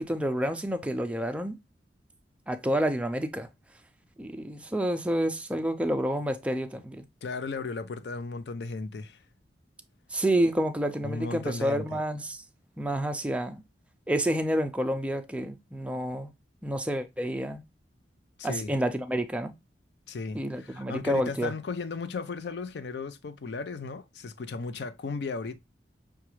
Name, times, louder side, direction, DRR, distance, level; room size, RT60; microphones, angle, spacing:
voice 1, 0.0-1.6 2.5-3.5 4.2-7.1 10.1-12.4 12.8-13.6 14.1-16.3 16.6-17.6 18.4-19.5 20.3-21.5, right 1 dB, 5° right, 0.4 m, -29 dB
voice 2, 7.2-9.2 11.0-11.9 18.4-18.7 20.1-25.6, left 4 dB, 70° left, 0.5 m, -35 dB
5.8 x 2.3 x 3.0 m
head